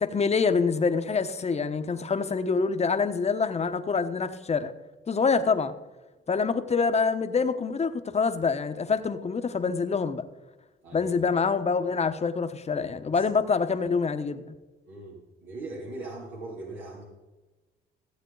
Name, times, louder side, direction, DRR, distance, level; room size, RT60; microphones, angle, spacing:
voice 1, 0.0-4.7 5.1-5.7 6.3-10.2 10.9-14.4, left 5 dB, 35° left, 1.0 m, -26 dB
voice 2, 14.9-17.0, right 2 dB, 90° right, 2.7 m, -40 dB
15.0 x 7.9 x 3.9 m
cardioid pair, 90°, 20 cm